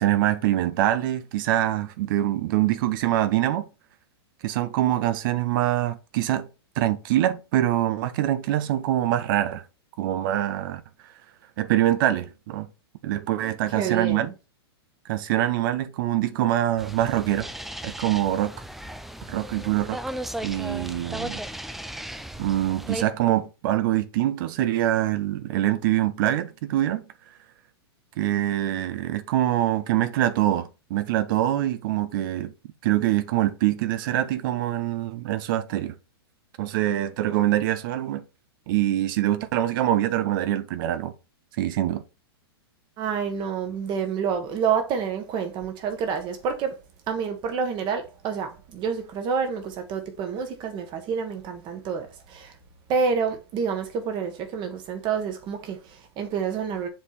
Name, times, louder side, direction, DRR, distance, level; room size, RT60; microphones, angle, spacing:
voice 1, 0.0-3.6 4.4-6.5 6.8-9.6 10.0-10.8 11.6-12.7 13.0-14.3 15.1-17.5 17.8-18.5 19.3-20.0 20.4-21.4 22.4-27.0 28.2-32.5 32.8-35.9 36.6-38.2 38.7-41.1 41.6-42.0, right 13 dB, 55° right, 0.8 m, -24 dB
voice 2, 13.4-14.3 43.0-46.7 47.1-52.5 52.9-56.9, right 6 dB, 35° right, 1.5 m, -28 dB
sound 1, 16.8-23.0, right 1 dB, ahead, 0.4 m, -36 dB
7.2 x 3.6 x 4.2 m
hypercardioid pair, 125°, 13 cm